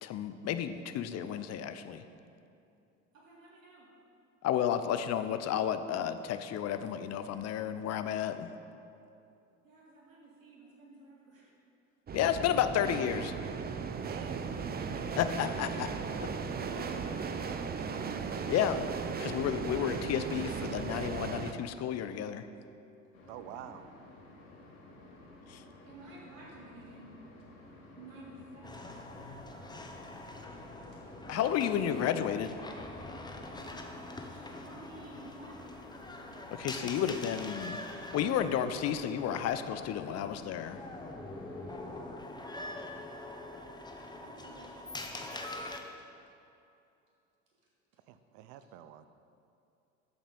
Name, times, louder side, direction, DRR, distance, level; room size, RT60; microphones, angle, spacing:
voice 1, 0.0-2.0 4.4-8.5 12.1-13.3 15.2-15.9 16.2-16.3 18.5-18.8 19.2-22.5 25.5-25.6 31.3-32.6 36.5-37.8 38.1-40.8, left 9 dB, 40° left, 10 dB, 0.8 m, -32 dB
voice 2, 3.1-3.9 9.6-11.5 16.6-17.6 23.5-23.8 25.8-27.3 27.9-29.3 30.9-31.1 33.4-33.8 34.2-35.7 44.2-44.8 46.0-46.1, right 2 dB, 75° right, -4 dB, 3.0 m, -53 dB
sound 1, 12.1-21.5, right 5 dB, 25° right, 0.7 m, -36 dB
voice 3, 14.0-14.6 18.4-18.8 23.3-23.9 31.2-31.5 48.1-49.1, right 11 dB, 55° right, 11 dB, 0.8 m, -47 dB
sound 2, 23.1-42.1, left 2 dB, 75° left, 2.1 m, -54 dB
sound 3, 28.6-45.8, left 2 dB, 10° left, 1.1 m, -44 dB
12.5 x 7.3 x 5.4 m, 2.6 s
hypercardioid pair, 70°, 40 cm